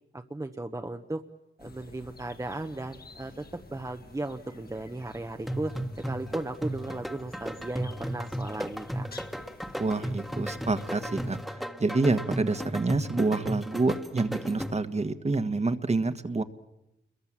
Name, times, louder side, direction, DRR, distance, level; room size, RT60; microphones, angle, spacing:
voice 1, 0.1-1.2 1.6-3.4 3.7-9.1, right 2 dB, 15° right, 5 dB, 1.0 m, -36 dB
sound 1, 1.6-11.5, left 3 dB, 55° left, 2.1 m, -51 dB
sound 2, 5.5-15.0, equal, ahead, 1.5 m, -35 dB
voice 2, 9.8-11.4 11.8-16.4, right 3 dB, 35° right, 9 dB, 1.4 m, -27 dB
29.0 x 22.5 x 7.5 m, 0.91 s
wide cardioid pair, 85°, 19 cm